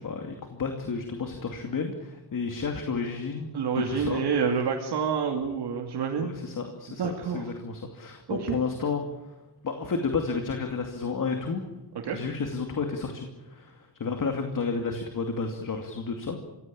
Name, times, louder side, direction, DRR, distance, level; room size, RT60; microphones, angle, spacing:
voice 1, 0.0-4.2 6.2-9.0 9.6-11.6 12.1-16.4, left 4 dB, 55° left, 4 dB, 2.6 m, -31 dB
voice 2, 3.5-6.3 7.0-7.5 8.3-8.6 12.0-12.2, right 6 dB, 80° right, 0 dB, 2.6 m, -28 dB
24.5 x 17.0 x 8.7 m, 1.1 s
cardioid pair, 100°, 40 cm